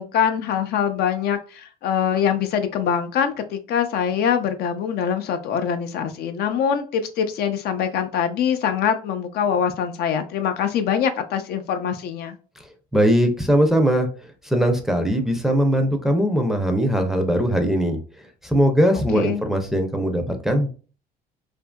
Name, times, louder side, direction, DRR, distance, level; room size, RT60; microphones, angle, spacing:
voice 1, 0.0-12.4 19.1-19.4, left 8 dB, 70° left, 8 dB, 0.4 m, -23 dB
voice 2, 12.9-14.1 14.4-18.0 18.4-20.7, equal, ahead, 3 dB, 0.5 m, -20 dB
2.7 x 2.5 x 2.2 m, 0.37 s
cardioid pair, 110°, 17 cm